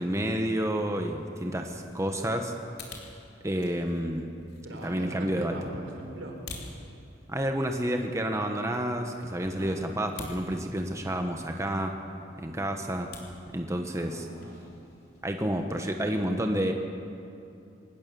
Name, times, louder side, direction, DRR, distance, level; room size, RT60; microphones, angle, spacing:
voice 1, 0.0-2.5 3.4-4.3 4.8-5.6 7.3-11.9 12.4-13.1 13.5-14.3 15.2-16.7, right 1 dB, 15° right, 4 dB, 1.2 m, -29 dB
sound 1, 0.7-16.1, left 3 dB, 60° left, 3.6 m, -51 dB
voice 2, 4.6-6.4 9.5-9.8 14.0-14.7, right 1 dB, 80° right, 1 dB, 4.6 m, -41 dB
24.5 x 19.0 x 6.9 m, 2.7 s
head